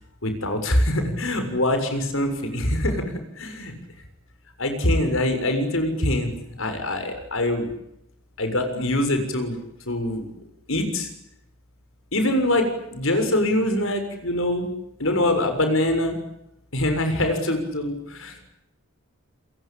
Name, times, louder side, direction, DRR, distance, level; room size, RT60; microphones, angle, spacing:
voice 1, 0.2-3.0 3.4-3.7 4.6-6.3 6.6-7.7 8.4-9.6 9.9-10.2 10.7-11.1 12.1-14.7 15.0-16.2 16.7-18.5, left 1 dB, 65° left, 7 dB, 6.7 m, -24 dB
28.0 x 22.5 x 8.9 m, 0.82 s
head